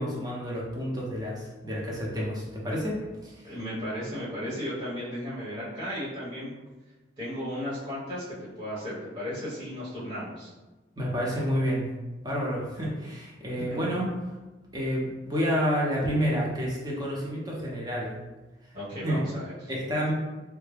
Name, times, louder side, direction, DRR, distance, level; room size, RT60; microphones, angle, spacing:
voice 1, 0.0-3.5 11.0-11.9 12.2-14.1 14.7-18.2 19.0-19.2 19.7-20.1, equal, 20° right, -4 dB, 0.8 m, -29 dB
voice 2, 3.4-6.5 7.2-10.5 13.5-13.8 18.7-19.7, equal, 45° right, -12 dB, 1.5 m, -35 dB
3.4 x 2.2 x 3.3 m, 1.2 s
head